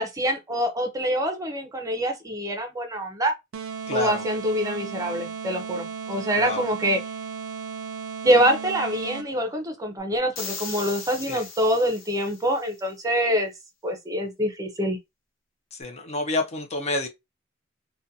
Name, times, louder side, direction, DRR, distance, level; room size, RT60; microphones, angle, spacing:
voice 1, 0.0-3.3 3.9-7.0 8.2-13.5 13.8-15.0, equal, 15° right, 0.5 m, -25 dB
sound 1, 3.5-9.5, right 6 dB, 85° right, 0.5 m, -35 dB
voice 2, 3.9-4.3 6.4-6.6 11.3-11.5 15.7-17.1, left 2 dB, 35° left, 0.5 m, -28 dB
sound 2, 10.3-12.6, left 5 dB, 70° left, 0.8 m, -38 dB
2.4 x 2.2 x 2.6 m
head